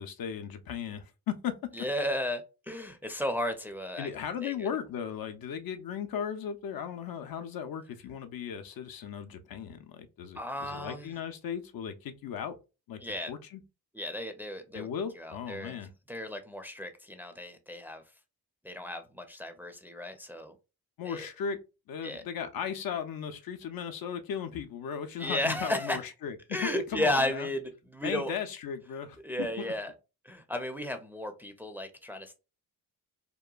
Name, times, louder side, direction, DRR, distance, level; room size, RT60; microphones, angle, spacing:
voice 1, 0.0-1.5 4.0-12.5 12.9-13.0 13.3-13.6 14.7-15.9 21.0-21.6 21.9-27.5 28.0-29.7, left 8 dB, 60° left, 0.5 m, -36 dB
voice 2, 1.7-4.1 4.4-4.7 10.4-11.1 13.0-13.3 13.9-14.9 15.2-15.8 16.1-18.0 18.6-20.6 21.1-21.3 22.0-22.2 25.2-26.0 26.5-28.3 29.2-29.9 30.2-32.4, left 1 dB, 5° right, 0.5 m, -34 dB
2.9 x 2.2 x 2.3 m
cardioid pair, 60°, 40 cm